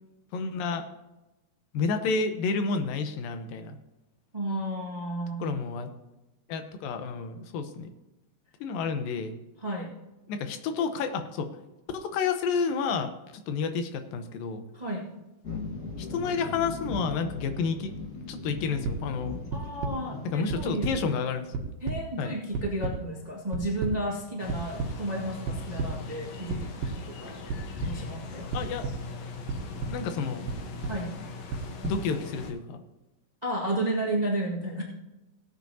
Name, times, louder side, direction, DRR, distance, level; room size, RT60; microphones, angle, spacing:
voice 1, 0.3-0.8 1.7-3.8 5.4-5.9 6.5-7.9 8.6-9.3 10.3-11.5 11.9-13.1 13.5-14.6 16.0-17.9 18.3-19.4 20.3-21.5 22.2-22.3 28.5-28.9 29.9-30.4 31.8-32.8, left 5 dB, 85° left, 8 dB, 2.6 m, -30 dB
voice 2, 4.3-5.6 9.6-9.9 14.7-15.1 19.5-21.3 21.8-27.4 27.8-28.5 30.8-31.2 33.4-34.8, right 1 dB, 25° right, -3 dB, 0.8 m, -32 dB
sound 1, 15.4-20.7, left 3 dB, 40° left, 1.1 m, -38 dB
sound 2, 18.8-19.0 19.5-19.9 20.5-20.9 21.3-22.0 22.5-22.9 23.5-23.9 24.5-24.9 25.5-25.9 26.5-26.9 27.5-27.9 28.5-28.9 29.5-29.9 30.5-30.9 31.5-31.9, right 3 dB, 85° right, 2.9 m, -31 dB
sound 3, 24.4-32.5, left 4 dB, 60° left, 1.9 m, -40 dB
17.0 x 8.9 x 2.8 m, 1.0 s
omnidirectional pair, 4.0 m